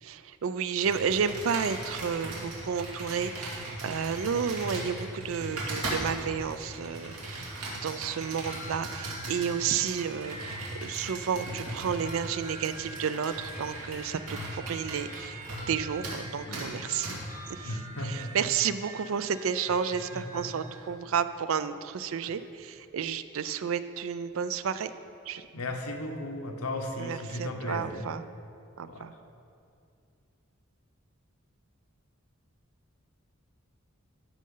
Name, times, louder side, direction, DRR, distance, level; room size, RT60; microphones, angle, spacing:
voice 1, 0.0-7.5 7.8-17.2 17.5-17.8 18.0-24.9 25.3-25.5 27.0-28.2 28.8-29.1, right 7 dB, 65° right, 13 dB, 0.4 m, -31 dB
Computer keyboard, 0.8-15.8 16.0-16.2 16.5-16.7 17.0-17.2, right 1 dB, 90° right, 2.4 m, -38 dB
sound 1, 7.4-20.9, right 2 dB, 35° right, 1.9 m, -46 dB
voice 2, 17.7-18.4 20.1-20.4 22.2-22.3 25.5-28.1 28.9-29.2, left 1 dB, 90° left, 4 dB, 1.0 m, -36 dB
13.5 x 6.3 x 3.8 m, 2.5 s
head